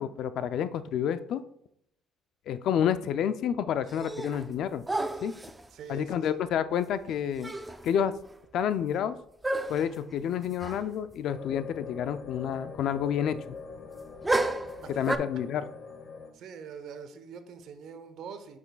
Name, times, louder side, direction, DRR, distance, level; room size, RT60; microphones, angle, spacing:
voice 1, 0.0-1.4 2.5-4.8 5.2-5.3 5.9-7.5 7.8-8.1 8.5-9.2 9.7-13.6 15.0-15.6, left 9 dB, 60° left, 13 dB, 0.4 m, -29 dB
sound 1, 3.9-4.5 4.9-5.7 7.1-7.2 7.4-7.9 8.3-8.4 9.4-10.0 10.6-10.9 11.1-11.2 14.2-15.2, right 2 dB, 10° right, 0.4 m, -31 dB
voice 2, 5.7-6.4 14.8-15.2 16.3-18.6, right 6 dB, 60° right, 8 dB, 0.9 m, -44 dB
sound 2, 11.3-16.3, left 4 dB, 40° left, 1.0 m, -43 dB
8.8 x 6.1 x 2.3 m, 0.73 s
cardioid pair, 135°, 0 cm